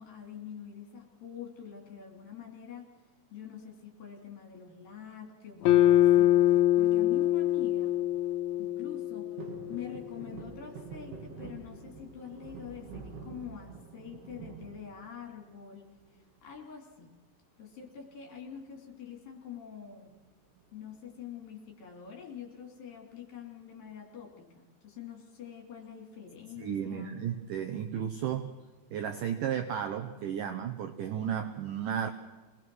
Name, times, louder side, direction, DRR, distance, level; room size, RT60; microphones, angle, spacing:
voice 1, 0.0-2.9 3.3-6.3 6.8-8.0 8.6-9.3 9.7-15.9 16.4-17.1 17.6-20.1 20.7-27.1, left 8 dB, 55° left, 2 dB, 4.6 m, -45 dB
sound 1, 5.6-10.0, left 13 dB, 90° left, 3.3 m, -24 dB
sound 2, 9.4-15.6 16.0-16.6 17.9-18.3 18.5-18.6 18.9-19.2 20.1-21.0 21.4-21.5, right 6 dB, 65° right, 4.3 m, -47 dB
voice 2, 26.6-28.5 28.9-32.1, right 9 dB, 85° right, 7 dB, 1.9 m, -33 dB
26.5 x 19.5 x 6.2 m, 1.2 s
omnidirectional pair, 5.1 m